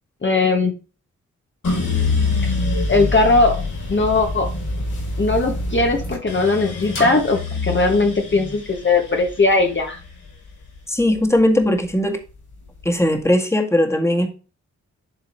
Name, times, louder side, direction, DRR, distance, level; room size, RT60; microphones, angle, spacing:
voice 1, 0.2-0.7 2.4-2.5 2.9-3.6 3.9-4.5 5.2-10.0, left 3 dB, 40° left, 2 dB, 1.4 m, -18 dB
sound 1, 1.6-11.8 12.3-13.1, left 3 dB, 80° left, 5.0 m, -26 dB
voice 2, 10.9-12.2 12.9-14.3, left 1 dB, 10° left, 4 dB, 1.8 m, -18 dB
11.0 x 3.7 x 4.5 m, 0.34 s
cardioid pair, 60°, 30 cm